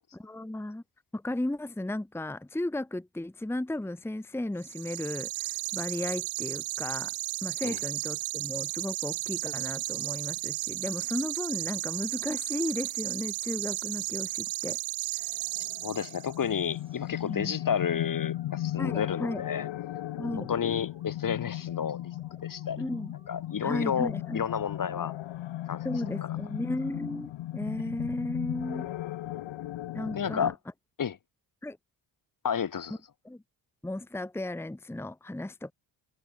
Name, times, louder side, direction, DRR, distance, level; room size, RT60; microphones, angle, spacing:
voice 1, 0.1-0.8 1.1-7.1 7.4-14.8 17.3-17.6 18.8-19.4 20.2-20.5 22.8-23.1 23.6-24.4 25.8-28.9 29.9-30.5 31.6-31.8 33.2-33.4 33.8-35.7, left 1 dB, 5° left, 1.1 m, -35 dB
sound 1, 4.6-16.4, right 21 dB, 70° right, 0.5 m, -34 dB
sound 2, 15.2-30.5, left 14 dB, 70° left, 1.5 m, -36 dB
voice 2, 15.8-19.7 20.4-22.1 22.4-22.8 23.3-25.1 25.7-25.8 26.2-26.3 30.2-30.6 31.0-31.2 32.4-33.0, left 7 dB, 45° left, 1.7 m, -31 dB
sound 3, 16.7-26.6, right 1 dB, 10° right, 6.3 m, -61 dB
supercardioid pair, 65°, 47 cm